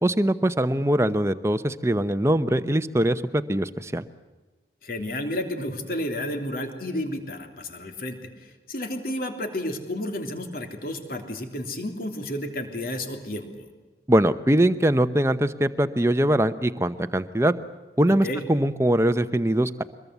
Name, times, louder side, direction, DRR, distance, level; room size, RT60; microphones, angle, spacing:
voice 1, 0.0-4.0 14.1-17.6 18.0-19.8, right 1 dB, 15° right, 11 dB, 0.9 m, -22 dB
voice 2, 4.8-13.7 18.1-18.5, left 1 dB, 55° left, 5 dB, 3.3 m, -32 dB
24.0 x 21.5 x 8.2 m, 1.2 s
head